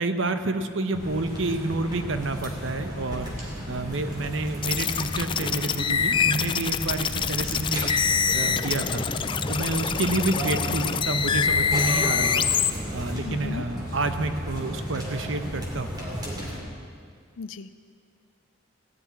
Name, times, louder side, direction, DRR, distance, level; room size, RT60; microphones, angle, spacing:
voice 1, 0.0-3.3 3.7-7.9 8.3-9.1 9.5-12.5 12.9-16.0, right 2 dB, 70° right, 9 dB, 0.9 m, -29 dB
sound 1, 0.9-16.6, equal, 20° right, 2.7 m, -34 dB
sound 2, 3.3-5.3 5.7-6.1 6.4-9.6, right 1 dB, 45° right, 3.3 m, -52 dB
sound 3, 4.6-12.7, left 7 dB, 25° left, 0.3 m, -25 dB
voice 2, 13.3-13.6 17.4-17.7, left 4 dB, 80° left, 13 dB, 0.5 m, -36 dB
16.5 x 7.1 x 9.5 m, 2.2 s
head